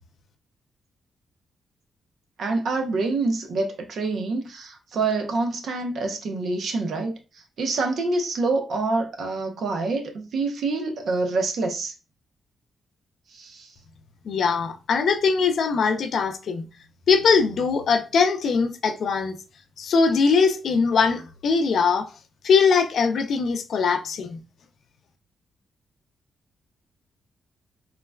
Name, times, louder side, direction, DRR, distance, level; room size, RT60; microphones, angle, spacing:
voice 1, 2.4-7.2 7.6-11.9 13.3-13.7, right 3 dB, 70° right, 0.7 m, -26 dB
voice 2, 14.3-16.7 17.1-19.3 19.8-22.1 22.4-24.4, left 5 dB, 70° left, 0.4 m, -21 dB
3.8 x 2.1 x 2.2 m
cardioid pair, 75°, 0 cm